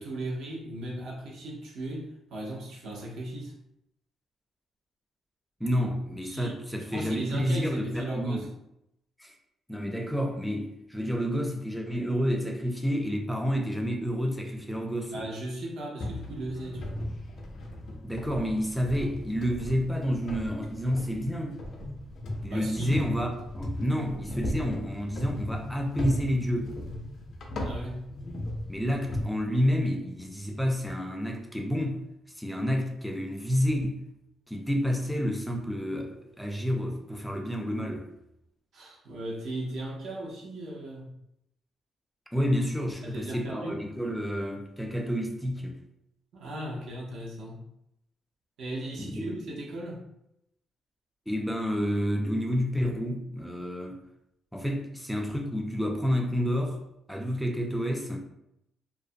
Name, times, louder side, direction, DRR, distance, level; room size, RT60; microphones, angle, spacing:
voice 1, 0.0-3.6 6.2-6.6 6.9-8.5 15.1-17.0 22.5-23.0 27.6-28.1 38.7-41.1 43.0-43.8 46.3-47.6 48.6-50.1, right 1 dB, 75° right, -3 dB, 0.7 m, -37 dB
voice 2, 5.6-8.5 9.2-9.3 9.7-15.2 18.0-21.6 22.4-26.7 28.7-32.0 32.4-34.0 34.5-38.1 42.3-45.7 49.0-49.3 51.3-54.0 54.5-56.8 57.1-58.2, equal, ahead, 2 dB, 0.3 m, -29 dB
sound 1, 16.0-29.2, left 1 dB, 60° left, 0.5 m, -37 dB
2.4 x 2.0 x 2.6 m, 0.82 s
cardioid pair, 90°, 0 cm